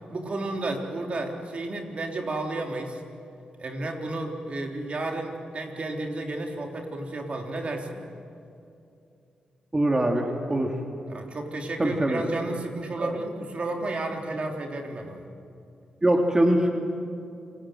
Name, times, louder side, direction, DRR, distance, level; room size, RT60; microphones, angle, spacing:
voice 1, 0.1-3.0 3.6-8.0 11.1-15.3, right 2 dB, 50° right, 2 dB, 3.8 m, -32 dB
voice 2, 9.7-10.7 11.8-12.2 13.0-13.2 16.0-16.7, right 1 dB, 25° right, 2 dB, 2.9 m, -23 dB
28.0 x 21.0 x 7.9 m, 2.6 s
cardioid pair, 55°, 3 cm